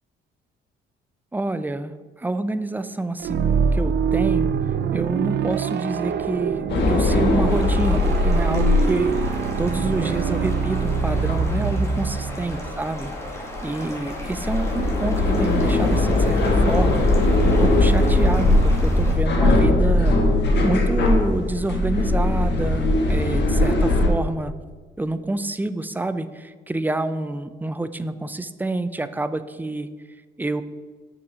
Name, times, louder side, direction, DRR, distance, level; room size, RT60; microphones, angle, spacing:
voice 1, 1.3-1.9 2.2-4.5 4.9-9.3 9.6-13.1 13.6-17.0 17.4-20.2 20.6-24.5 25.0-29.9 30.4-30.6, right 2 dB, 10° right, 13 dB, 0.4 m, -28 dB
sound 1, 3.2-12.9, right 6 dB, 60° right, 0.5 m, -25 dB
sound 2, 6.7-24.1, left 1 dB, 60° left, 1.5 m, -20 dB
sound 3, 7.5-19.2, left 1 dB, 15° left, 2.1 m, -36 dB
6.8 x 5.5 x 5.5 m, 1.4 s
cardioid pair, 90°, 20 cm